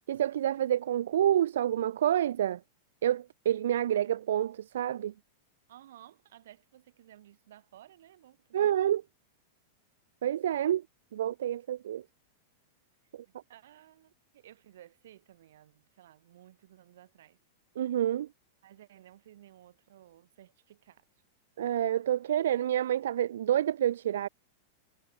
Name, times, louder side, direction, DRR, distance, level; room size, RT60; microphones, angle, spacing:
voice 1, 0.1-2.6 3.0-5.1 8.5-9.0 10.2-10.8 11.1-12.0 13.1-13.2 17.8-18.3 21.6-24.3, right 11 dB, 90° right, 0.3 m, -28 dB
voice 2, 5.7-8.7 13.3-17.4 18.6-21.1, right 12 dB, 65° right, 2.9 m, -56 dB
supercardioid pair, 180°, 0 cm